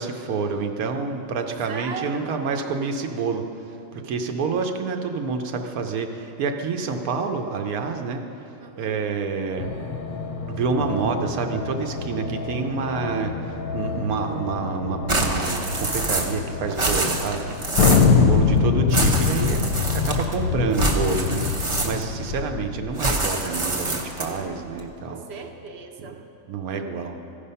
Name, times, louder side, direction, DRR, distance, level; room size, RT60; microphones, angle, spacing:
voice 1, 0.0-8.2 8.8-9.7 10.5-17.5 18.2-19.7 19.9-25.2 26.5-27.2, right 5 dB, 85° right, 5 dB, 1.2 m, -28 dB
voice 2, 1.7-2.3 8.6-9.0 17.8-18.2 25.0-26.2, right 5 dB, 55° right, 3 dB, 0.9 m, -37 dB
sound 1, 9.6-25.6, left 3 dB, 50° left, 0.7 m, -35 dB
sound 2, 15.1-16.4 16.7-18.1 18.9-20.3 20.7-22.2 23.0-24.4, right 2 dB, 30° right, 0.6 m, -26 dB
Thunder, 17.8-22.9, left 5 dB, 90° left, 1.1 m, -21 dB
15.0 x 5.1 x 5.5 m, 2.9 s
omnidirectional pair, 1.5 m